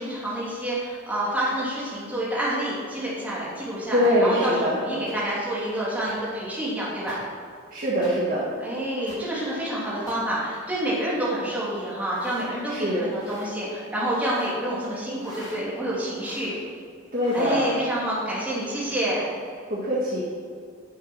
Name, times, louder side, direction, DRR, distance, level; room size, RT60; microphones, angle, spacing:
voice 1, 0.0-7.2 8.6-16.6 17.3-19.2, right 1 dB, 10° right, -8 dB, 2.9 m, -28 dB
voice 2, 3.9-4.8 7.7-8.5 12.7-13.1 17.1-17.7 19.7-20.2, equal, 45° right, -7 dB, 1.7 m, -23 dB
sound 1, 4.0-4.1 5.1-5.2 6.1-6.2 7.1-7.2 8.0-8.1 9.1-9.2 10.1-10.2 12.0-12.5 13.1-13.5 14.1-14.6 15.2-15.6 16.2-16.5 17.1-17.6, left 1 dB, 25° left, 3.1 m, -45 dB
9.9 x 7.0 x 6.2 m, 2.2 s
head